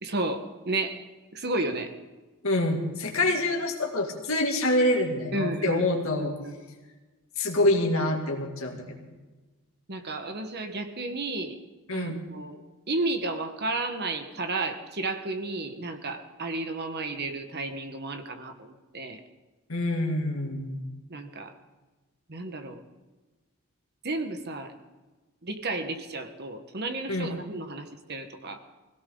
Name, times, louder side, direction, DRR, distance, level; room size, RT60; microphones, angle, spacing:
voice 1, 0.0-1.0 1.3-1.9 5.3-5.8 6.4-6.5 9.9-11.6 11.9-12.6 12.9-19.2 21.1-21.5 22.3-22.8 24.0-24.7 25.4-28.6, right 2 dB, 45° right, 7 dB, 1.4 m, -32 dB
voice 2, 2.4-6.3 7.4-8.9 11.9-12.2 19.7-20.8 27.1-27.3, left 1 dB, 65° left, 1 dB, 2.4 m, -26 dB
21.0 x 17.0 x 3.9 m, 1.2 s
head